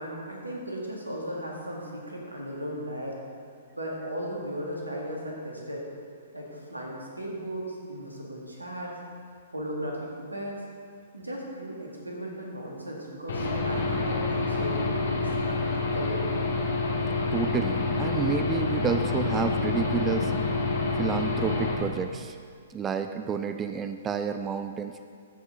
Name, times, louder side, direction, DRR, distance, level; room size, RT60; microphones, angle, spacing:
voice 1, 0.0-3.2 3.8-5.8 6.3-8.9 9.5-10.5 11.1-16.2, equal, 85° right, -2 dB, 1.9 m, -36 dB
Aircraft / Engine, 13.3-21.7, left 3 dB, 60° left, 1.6 m, -27 dB
voice 2, 17.3-20.3 21.0-22.4 22.7-25.0, right 6 dB, 15° right, 8 dB, 0.3 m, -30 dB
14.0 x 5.4 x 4.0 m, 2.1 s
figure-of-eight pair, 120°, 0 cm